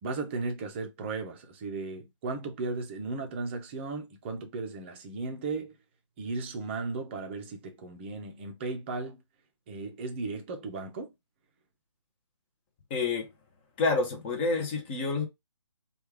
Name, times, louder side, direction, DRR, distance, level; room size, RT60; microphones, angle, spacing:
voice 1, 0.0-5.7 6.2-9.2 9.7-11.1, right 3 dB, 20° right, 0.6 m, -36 dB
voice 2, 12.9-13.3 13.8-15.3, left 3 dB, 20° left, 0.8 m, -28 dB
3.2 x 2.4 x 3.2 m
figure-of-eight pair, 145°, 16 cm